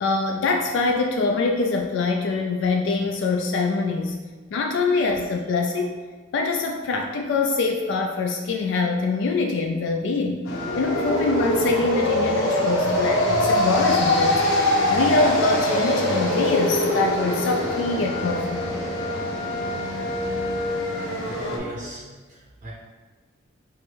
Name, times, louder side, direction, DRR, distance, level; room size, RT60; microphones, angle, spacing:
voice 1, 0.0-4.2 4.5-5.9 6.3-10.4 10.8-18.6, left 3 dB, 65° left, 2 dB, 0.3 m, -24 dB
sound 1, 10.5-21.6, left 1 dB, 90° left, 0.7 m, -23 dB
voice 2, 21.2-22.7, equal, 40° right, -3 dB, 0.5 m, -36 dB
4.8 x 2.1 x 4.5 m, 1.3 s
head